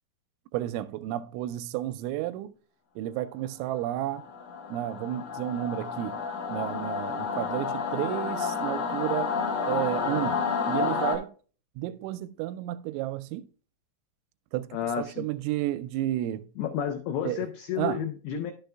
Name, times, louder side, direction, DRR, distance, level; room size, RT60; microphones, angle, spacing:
voice 1, 0.5-2.5 3.0-4.3 4.7-6.2 6.5-9.4 9.7-11.3 11.8-13.5 14.5-16.5 17.2-17.5 17.8-18.1, right 14 dB, 85° right, 2.9 m, -32 dB
Singing / Musical instrument, 4.0-11.1, left 5 dB, 65° left, 1.6 m, -30 dB
voice 2, 14.7-15.3 16.6-18.5, left 9 dB, 85° left, 2.2 m, -31 dB
12.0 x 6.7 x 2.3 m
omnidirectional pair, 5.4 m